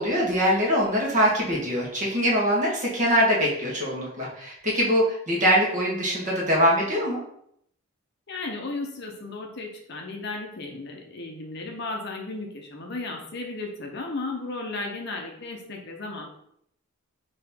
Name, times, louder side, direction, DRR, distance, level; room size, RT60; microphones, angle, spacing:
voice 1, 0.0-7.2, equal, 35° right, -4 dB, 1.2 m, -23 dB
voice 2, 8.3-16.3, left 3 dB, 50° left, 1 dB, 0.7 m, -34 dB
4.2 x 2.9 x 3.5 m, 0.70 s
head